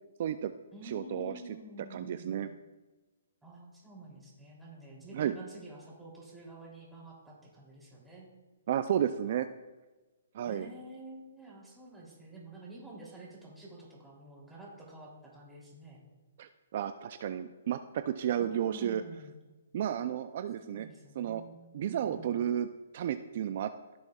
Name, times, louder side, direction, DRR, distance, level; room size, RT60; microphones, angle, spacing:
voice 1, 0.2-0.5 0.8-1.4 1.9-2.5 5.1-5.3 8.7-9.5 10.3-10.7 16.4-19.0 19.7-20.9 21.2-21.4 21.7-22.7 22.9-23.7, right 10 dB, 50° right, 10 dB, 0.4 m, -32 dB
voice 2, 0.7-2.4 3.4-8.3 10.5-16.0 18.4-19.4 20.6-22.4, right 2 dB, 5° right, -5 dB, 3.0 m, -49 dB
15.5 x 6.3 x 2.4 m, 1.2 s
hypercardioid pair, 140°, 0 cm